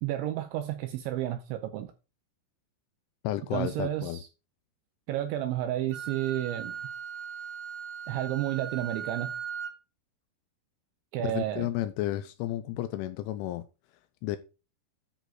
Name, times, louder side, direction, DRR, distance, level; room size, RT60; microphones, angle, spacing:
voice 1, 0.0-1.9 3.5-4.3 5.1-6.8 8.1-9.3 11.1-11.7, right 13 dB, 90° right, 2.7 m, -31 dB
voice 2, 3.2-4.2 11.2-13.7 14.2-14.4, left 14 dB, 85° left, 2.8 m, -32 dB
Wind instrument woodwind instrument, 5.9-9.8, right 7 dB, 70° right, 2.0 m, -38 dB
10.5 x 4.0 x 6.2 m
omnidirectional pair, 6.0 m